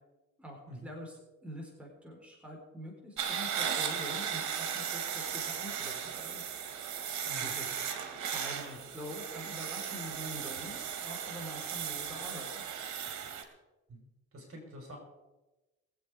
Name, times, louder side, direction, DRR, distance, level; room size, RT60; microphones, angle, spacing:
voice 1, 0.4-6.4 7.4-12.6, equal, 5° right, -1 dB, 4.4 m, -45 dB
sound 1, 3.2-13.4, right 8 dB, 70° right, 2.1 m, -36 dB
voice 2, 13.9-15.0, equal, 50° right, 2 dB, 4.7 m, -47 dB
22.0 x 8.0 x 4.9 m, 1.1 s
cardioid pair, 90°, 30 cm